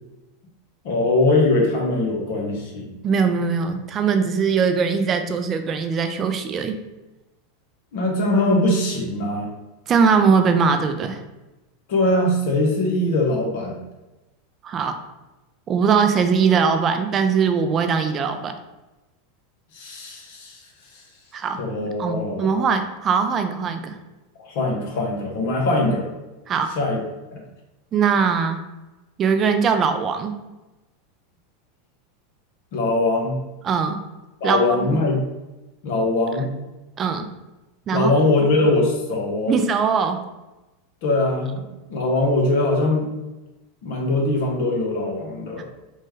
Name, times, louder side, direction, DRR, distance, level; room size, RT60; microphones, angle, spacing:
voice 1, 0.8-2.9 7.9-9.5 11.9-13.8 19.7-20.6 21.6-22.5 24.4-26.1 26.8-27.0 27.3-27.4 32.7-33.4 34.4-35.2 35.8-36.5 37.9-39.5 41.0-43.1 43.8-45.6, left 2 dB, 65° left, 0 dB, 0.7 m, -21 dB
voice 2, 3.0-6.8 9.9-11.2 14.6-15.0 15.7-18.5 21.3-24.0 26.5-26.8 27.9-28.6 29.2-30.3 33.6-34.0 34.4-35.0 37.0-37.3 37.9-38.1 39.5-40.2 45.6-45.7, right 6 dB, 35° right, 7 dB, 0.4 m, -21 dB
3.1 x 2.2 x 3.2 m, 1.1 s
hypercardioid pair, 105°, 0 cm